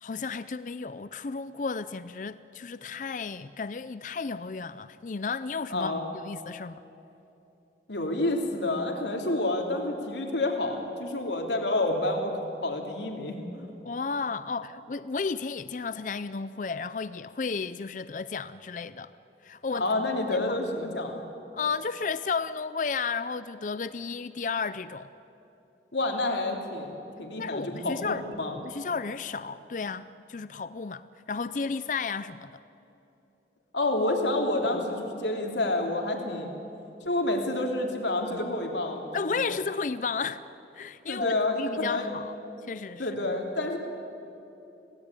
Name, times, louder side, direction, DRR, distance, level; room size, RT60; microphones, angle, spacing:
voice 1, 0.0-6.8 13.8-19.1 19.4-19.9 20.3-20.6 21.5-25.1 27.4-28.2 28.5-32.6 39.1-40.4 40.7-42.3 42.7-43.1, left 5 dB, 45° left, 0.5 m, -33 dB
voice 2, 5.7-6.0 7.9-13.7 19.7-21.2 25.9-28.5 33.7-36.5 37.0-39.6 41.1-42.1 43.0-43.8, left 2 dB, 90° left, 3.2 m, -29 dB
26.0 x 17.5 x 9.8 m
head